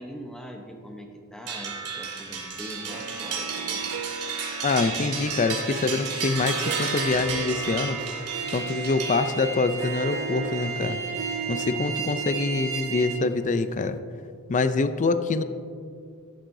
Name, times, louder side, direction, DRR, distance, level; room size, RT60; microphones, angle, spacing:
voice 1, 0.0-3.8, equal, 5° left, 2 dB, 0.8 m, -42 dB
sound 1, 1.5-9.6, right 5 dB, 85° right, 2.4 m, -32 dB
Harp, 2.9-14.0, right 6 dB, 50° right, 0.4 m, -38 dB
voice 2, 4.6-8.3 8.5-11.0 11.5-14.0 14.5-15.4, left 3 dB, 35° left, 11 dB, 0.4 m, -25 dB
sound 2, 6.6-13.2, right 6 dB, 65° right, 2.4 m, -34 dB
13.0 x 11.5 x 2.7 m, 2.3 s
head